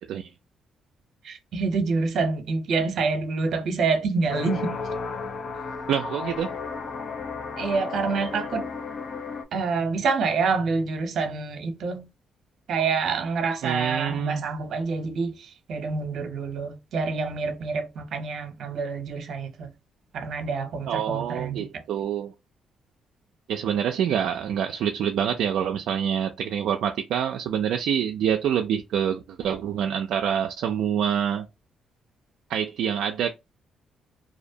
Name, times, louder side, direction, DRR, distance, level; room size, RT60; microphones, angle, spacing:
voice 1, 1.2-4.8 7.6-8.7 9.5-12.0 12.7-19.7 20.1-21.8, right 4 dB, 65° right, 0.7 m, -27 dB
sound 1, 4.3-9.4, left 4 dB, 50° left, 0.5 m, -33 dB
voice 2, 5.9-6.5 13.6-14.4 20.9-22.3 23.5-31.5 32.5-33.3, right 8 dB, 80° right, 0.3 m, -26 dB
2.5 x 2.1 x 2.6 m
cardioid pair, 90°, 0 cm